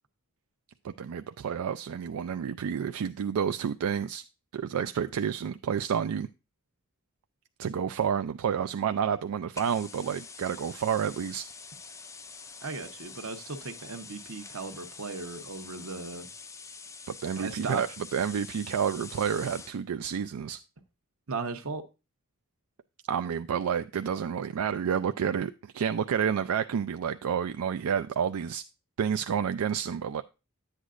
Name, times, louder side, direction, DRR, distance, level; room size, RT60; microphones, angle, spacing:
voice 1, 0.8-4.2 4.5-6.3 7.6-11.5 17.1-20.6 23.1-28.6 29.0-30.2, right 7 dB, 90° right, 0.4 m, -30 dB
sound 1, 9.5-19.8, left 5 dB, 15° left, 0.3 m, -46 dB
voice 2, 12.6-16.3 17.4-17.8 21.3-21.8, right 4 dB, 70° right, 1.0 m, -37 dB
10.5 x 8.1 x 2.5 m
head